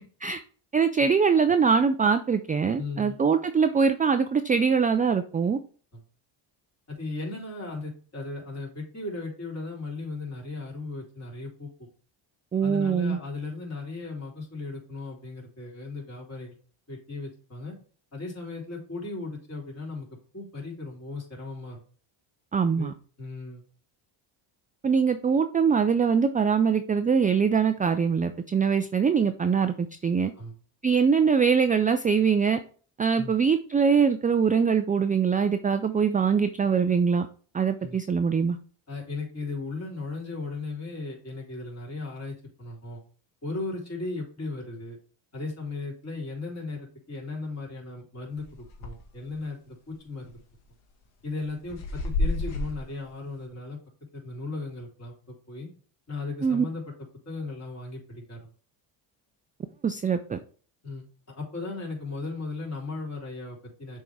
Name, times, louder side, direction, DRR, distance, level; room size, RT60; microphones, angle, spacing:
voice 1, 0.7-5.6 12.5-13.2 22.5-22.9 24.8-30.3 30.8-32.6 33.0-37.3 37.5-38.6 56.4-56.7 59.8-60.4, right 6 dB, 20° right, 9 dB, 0.3 m, -23 dB
voice 2, 2.8-3.2 5.9-6.0 6.9-11.9 12.6-16.6 16.9-17.8 18.1-21.8 22.8-23.6 30.4-30.6 33.2-33.4 37.8-38.0 38.9-43.0 43.4-45.0 45.3-50.4 51.2-53.8 54.1-55.7 56.1-56.8 57.3-58.5 60.8-64.0, left 3 dB, 30° left, -3 dB, 3.6 m, -36 dB
sound 1, 48.4-49.1 49.5-49.6 50.3-50.6 51.2-52.8, left 2 dB, 75° left, 1.8 m, -30 dB
6.8 x 3.7 x 4.6 m, 0.42 s
cardioid pair, 95°, 48 cm